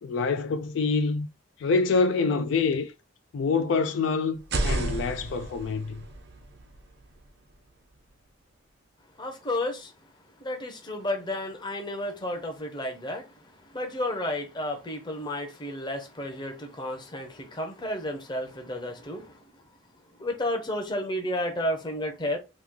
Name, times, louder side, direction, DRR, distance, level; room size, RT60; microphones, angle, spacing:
voice 1, 0.0-1.3 1.6-2.9 3.3-6.0, left 4 dB, 65° left, 0.3 m, -26 dB
sound 1, 4.3-8.2, right 2 dB, 55° right, 0.6 m, -33 dB
voice 2, 9.2-9.9 10.4-13.3 13.7-19.4 20.2-22.4, left 1 dB, 25° left, 0.7 m, -32 dB
3.0 x 2.4 x 3.5 m
head